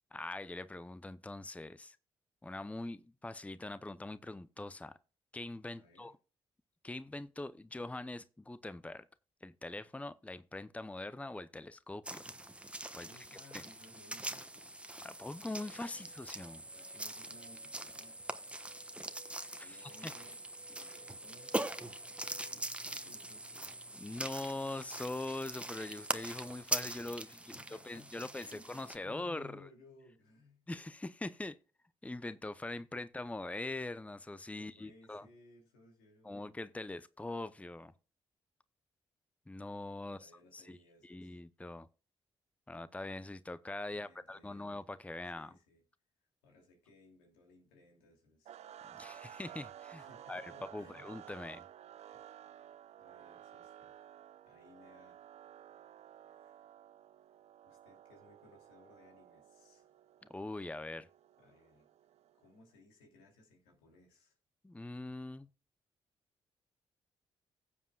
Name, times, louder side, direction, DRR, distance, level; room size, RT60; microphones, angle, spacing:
voice 1, 0.1-2.0 2.4-5.0 5.3-6.1 6.8-9.1 9.4-12.3 13.0-13.6 15.0-16.6 19.6-20.1 24.0-27.6 27.8-29.7 30.7-31.6 32.0-35.3 36.2-37.9 39.5-40.8 41.0-41.9 42.7-45.5 48.9-51.6 60.3-61.1 64.6-65.5, left 2 dB, 10° left, 0.7 m, -43 dB
voice 2, 5.7-6.1 13.0-14.8 15.9-16.1 16.6-18.5 19.5-20.4 20.7-21.6 22.2-23.8 27.2-30.7 34.5-36.5 40.0-41.4 43.9-44.7 45.3-45.8 46.4-48.6 49.9-51.1 52.1-52.2 53.0-53.9 54.4-55.2 56.3-56.7 57.6-60.0 61.4-61.9 62.3-64.4, left 2 dB, 85° left, 2.7 m, -61 dB
sound 1, 12.0-29.0, right 1 dB, 10° right, 1.2 m, -42 dB
sound 2, 15.5-22.7, right 6 dB, 30° right, 1.8 m, -64 dB
sound 3, 48.5-62.6, right 10 dB, 65° right, 0.5 m, -54 dB
16.0 x 7.4 x 2.4 m
hypercardioid pair, 45°, 12 cm